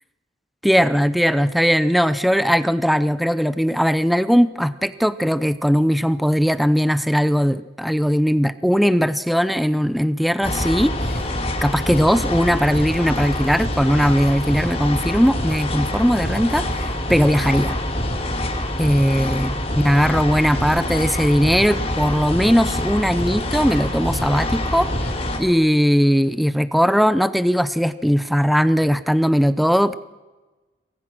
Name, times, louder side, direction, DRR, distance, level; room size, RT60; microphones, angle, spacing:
voice 1, 0.6-11.2 11.6-17.8 18.8-24.9 25.4-30.0, equal, ahead, 13 dB, 0.7 m, -19 dB
sound 1, 10.4-25.4, left 1 dB, 35° left, 4.1 m, -25 dB
28.0 x 21.5 x 6.2 m, 1.2 s
head